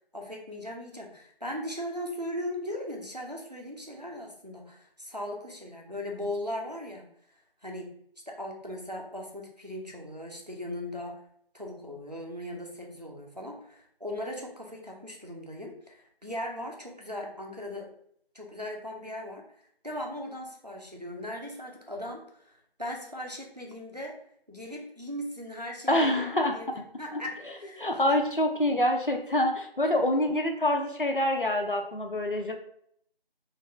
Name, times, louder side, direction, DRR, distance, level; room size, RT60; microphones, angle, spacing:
voice 1, 0.1-7.0 7.6-7.9 8.3-11.1 11.5-17.9 18.3-19.4 19.8-24.2 24.5-28.2 29.8-29.9, left 1 dB, 40° right, 0 dB, 0.6 m, -38 dB
voice 2, 25.9-26.8 27.1-27.2 27.8-32.5, left 1 dB, 55° left, 3 dB, 0.6 m, -26 dB
3.4 x 2.6 x 3.1 m, 0.67 s
figure-of-eight pair, 180°, 31 cm